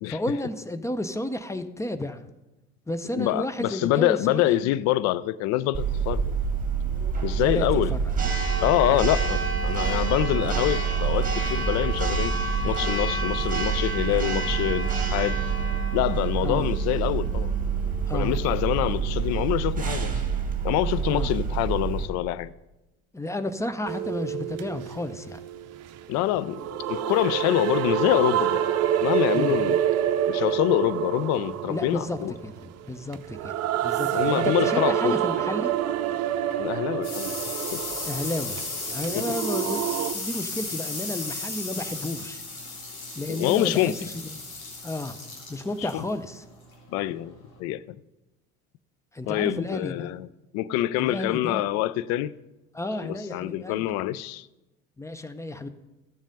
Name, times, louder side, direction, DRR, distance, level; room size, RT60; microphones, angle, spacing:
voice 1, 0.1-2.2 2.9-4.7 7.4-8.3 8.8-9.1 16.4-16.7 18.1-18.4 18.8-18.9 21.1-21.3 23.1-25.4 29.3-29.6 31.7-32.2 32.4-33.5 33.8-35.7 38.0-38.6 38.9-39.8 40.1-42.4 43.2-43.9 44.3-44.4 44.8-45.2 45.5-46.4 49.1-50.1 51.0-51.6 52.7-53.8 55.0-55.7, left 1 dB, 5° left, 0.7 m, -32 dB
voice 2, 3.1-6.3 7.2-7.9 8.6-12.4 12.6-15.4 15.9-17.5 18.1-20.2 20.6-22.5 26.1-26.6 26.9-28.6 29.0-29.8 30.3-32.3 34.0-35.2 36.6-37.9 39.1-39.3 43.3-44.1 45.8-46.1 46.9-48.0 49.3-50.3 50.5-52.3 53.0-54.5, left 14 dB, 40° left, 0.5 m, -26 dB
Church bell, 5.7-22.1, right 5 dB, 20° right, 2.1 m, -26 dB
sound 1, 23.8-40.1, right 10 dB, 40° right, 0.7 m, -27 dB
sound 2, 36.3-47.6, left 3 dB, 80° left, 2.3 m, -35 dB
13.0 x 7.2 x 5.3 m
figure-of-eight pair, 65°, 41 cm